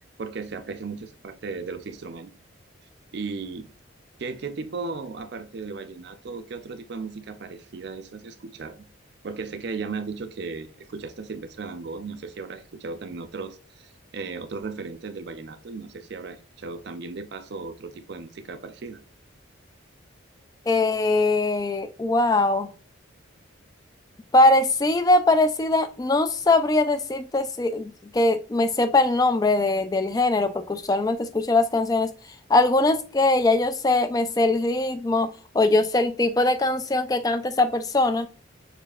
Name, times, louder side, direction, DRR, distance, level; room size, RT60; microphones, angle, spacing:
voice 1, 0.2-2.3 3.1-3.7 4.2-8.9 9.2-19.0, right 4 dB, 55° right, 0.4 m, -36 dB
voice 2, 20.7-22.7 24.3-32.1 32.5-38.3, left 2 dB, 20° left, 0.3 m, -21 dB
6.5 x 2.6 x 2.3 m
head